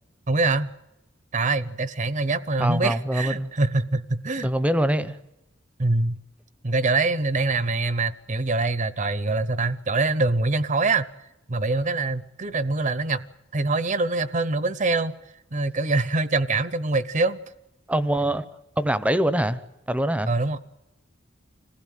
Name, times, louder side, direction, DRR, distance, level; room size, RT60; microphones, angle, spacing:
voice 1, 0.3-0.7 1.3-4.5 5.8-6.2 6.6-11.1 11.5-13.3 13.5-15.1 15.5-17.4 20.3-20.6, right 3 dB, 40° right, 15 dB, 0.8 m, -24 dB
voice 2, 2.6-3.5 4.4-5.2 17.9-18.5 18.8-19.6 19.9-20.3, right 1 dB, 5° right, 13 dB, 0.8 m, -23 dB
26.0 x 16.0 x 9.2 m, 0.94 s
head